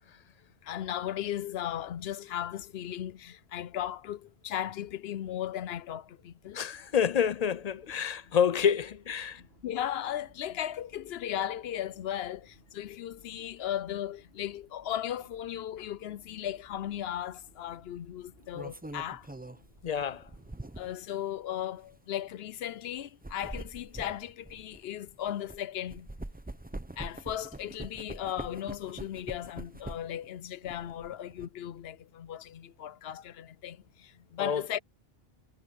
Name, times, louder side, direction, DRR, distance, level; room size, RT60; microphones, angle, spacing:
voice 1, 0.6-6.6 9.3-19.3 20.8-26.1 27.0-34.8, left 11 dB, 80° left, 0.8 m, -36 dB
voice 2, 6.5-9.4 19.8-20.3 34.4-34.8, left 8 dB, 50° left, 0.5 m, -28 dB
sound 1, 6.7-21.1, right 1 dB, 70° right, 6.1 m, -62 dB
sound 2, 16.7-16.9 18.2-21.1 21.8-21.9 23.0-25.6 25.9-30.2 30.6-31.5, right 1 dB, 10° right, 0.6 m, -44 dB
omnidirectional pair, 1.0 m